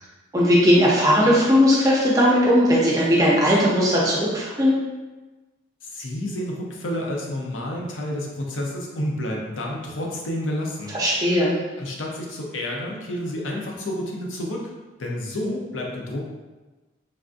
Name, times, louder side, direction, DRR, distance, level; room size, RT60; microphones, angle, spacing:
voice 1, 0.3-4.7 10.9-11.5, equal, 20° right, -6 dB, 0.6 m, -18 dB
voice 2, 5.8-11.3 11.8-14.7 15.0-16.3, left 1 dB, 85° left, -1 dB, 0.6 m, -30 dB
3.4 x 2.5 x 2.5 m, 1.2 s
head